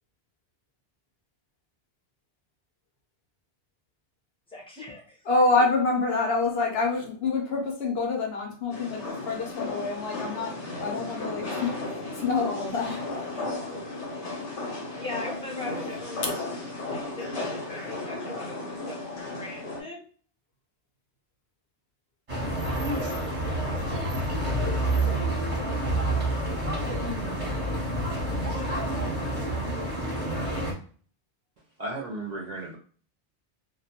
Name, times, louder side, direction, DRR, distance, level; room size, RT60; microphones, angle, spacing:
voice 1, 4.5-5.2 15.0-16.3 16.8-20.0, left 2 dB, 5° left, -3 dB, 0.6 m, -40 dB
voice 2, 5.3-13.4, left 3 dB, 65° left, 1 dB, 0.9 m, -27 dB
sound 1, 8.7-19.8, left 2 dB, 90° left, 1.1 m, -35 dB
sound 2, 22.3-30.7, right 1 dB, 30° right, 0.9 m, -28 dB
voice 3, 31.8-32.8, right 2 dB, 50° right, -3 dB, 0.5 m, -34 dB
2.3 x 2.1 x 2.8 m, 0.43 s
omnidirectional pair, 1.2 m